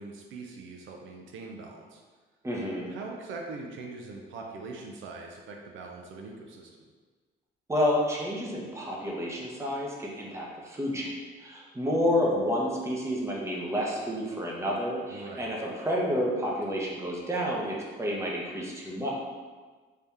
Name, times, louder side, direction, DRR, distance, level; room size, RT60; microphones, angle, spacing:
voice 1, 0.0-2.0 2.9-6.8 15.1-15.5, right 3 dB, 75° right, 1 dB, 0.5 m, -42 dB
voice 2, 2.4-2.9 7.7-19.1, equal, 15° right, -3 dB, 0.8 m, -30 dB
3.4 x 2.8 x 3.4 m, 1.4 s
cardioid pair, 90°, 20 cm